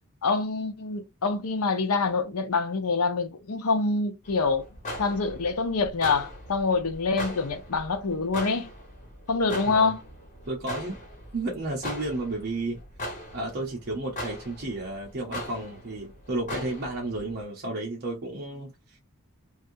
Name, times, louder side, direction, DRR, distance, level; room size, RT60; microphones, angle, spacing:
voice 1, 0.2-4.6 5.0-8.7 9.3-10.0, left 4 dB, 90° left, 0.7 m, -26 dB
sound 1, 4.2-17.4, left 1 dB, 35° left, 1.4 m, -40 dB
voice 2, 10.5-11.0 11.3-12.8 13.3-19.0, right 2 dB, 45° right, 0.8 m, -32 dB
3.2 x 2.6 x 2.6 m
head